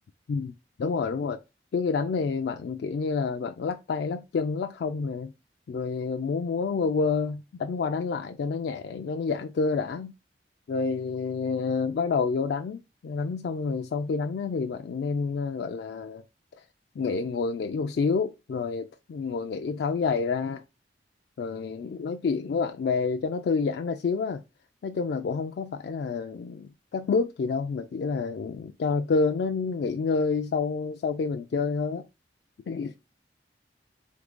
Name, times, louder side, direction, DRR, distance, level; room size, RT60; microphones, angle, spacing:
voice 1, 0.8-1.4 1.7-5.3 5.7-10.1 10.7-16.2 17.0-20.6 21.4-24.4 24.8-32.1 32.7-32.9, left 4 dB, 60° left, 0.3 m, -28 dB
3.7 x 3.1 x 3.6 m
head